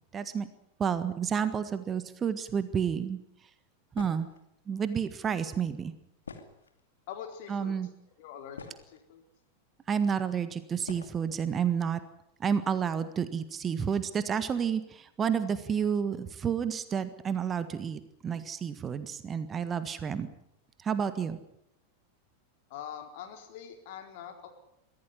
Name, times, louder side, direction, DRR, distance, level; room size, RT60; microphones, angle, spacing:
voice 1, 0.1-0.5 0.8-3.2 3.9-4.3 4.7-5.9 7.5-7.9 9.9-12.0 12.4-20.3 20.8-21.4, right 7 dB, 20° right, 12 dB, 1.6 m, -30 dB
sound 1, 3.9-4.4 6.2-7.0 7.8-7.9 8.3-9.1 10.0-10.1 10.8-11.2, left 5 dB, 70° left, 2.5 m, -46 dB
voice 2, 7.1-7.7 8.2-9.2 22.7-24.5, left 9 dB, 50° left, 5 dB, 4.4 m, -44 dB
24.0 x 16.0 x 9.9 m, 0.79 s
figure-of-eight pair, 90°, 0 cm